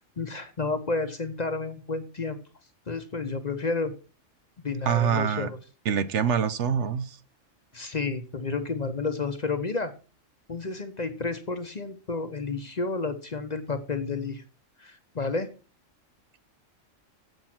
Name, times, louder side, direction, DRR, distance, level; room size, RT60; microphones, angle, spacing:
voice 1, 0.2-2.4 2.9-3.9 4.6-5.6 7.7-9.9 10.5-14.4 14.8-15.5, left 3 dB, 40° left, 0.8 m, -31 dB
voice 2, 4.9-5.5 5.9-7.2, right 7 dB, 70° right, 1.0 m, -25 dB
7.9 x 7.3 x 6.0 m
omnidirectional pair, 1.3 m